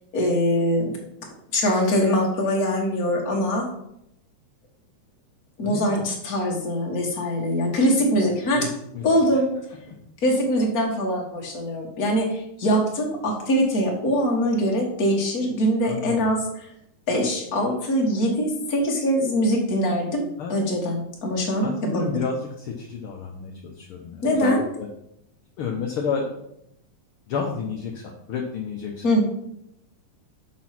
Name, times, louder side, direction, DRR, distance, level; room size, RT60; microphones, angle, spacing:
voice 1, 0.1-1.0 1.5-3.7 5.6-8.7 9.0-9.6 10.2-16.7 17.1-22.0 24.2-24.7 29.0-29.2, equal, 35° left, -1 dB, 1.8 m, -23 dB
voice 2, 5.6-6.0 8.5-8.7 8.9-9.1 9.9-10.0 15.8-16.2 20.4-20.6 21.6-24.9 25.6-26.4 27.3-29.0, left 5 dB, 65° left, 0 dB, 1.4 m, -31 dB
6.1 x 6.1 x 5.9 m, 0.77 s
omnidirectional pair, 3.5 m